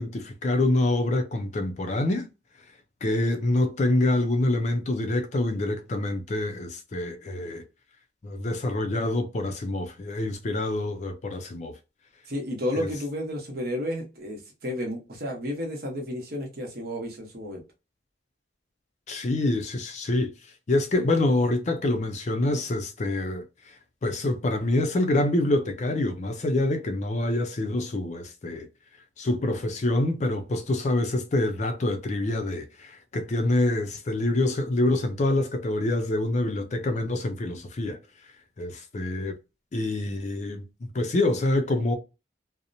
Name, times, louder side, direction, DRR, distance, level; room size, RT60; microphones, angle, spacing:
voice 1, 0.0-2.3 3.0-7.6 8.2-11.7 12.7-12.9 19.1-20.3 20.7-23.4 24.0-28.7 29.2-38.0 38.6-39.4 39.7-40.6 40.9-41.9, left 2 dB, 40° left, 0.4 m, -26 dB
voice 2, 12.3-17.6, left 1 dB, 55° right, 0.9 m, -32 dB
2.8 x 2.0 x 2.5 m
head